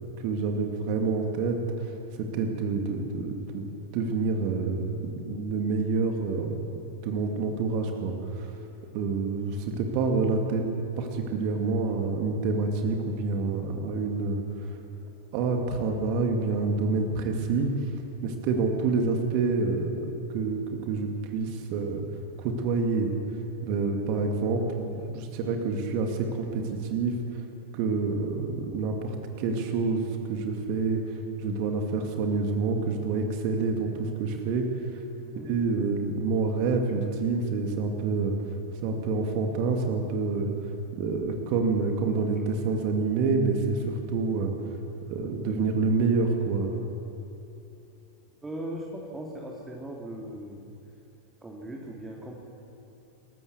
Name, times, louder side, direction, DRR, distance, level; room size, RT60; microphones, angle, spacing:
voice 1, 0.2-3.7 3.9-8.6 8.9-10.7 11.0-14.8 15.3-17.9 18.2-20.1 20.3-22.0 22.4-23.1 23.6-27.5 27.7-34.9 35.5-38.3 38.8-40.7 41.0-44.5 45.1-46.8, right 4 dB, 45° right, 3 dB, 2.4 m, -28 dB
voice 2, 48.4-50.6 51.4-52.4, right 1 dB, 10° right, -1 dB, 2.9 m, -39 dB
27.0 x 15.0 x 7.2 m, 2.7 s
figure-of-eight pair, 90°, 0 cm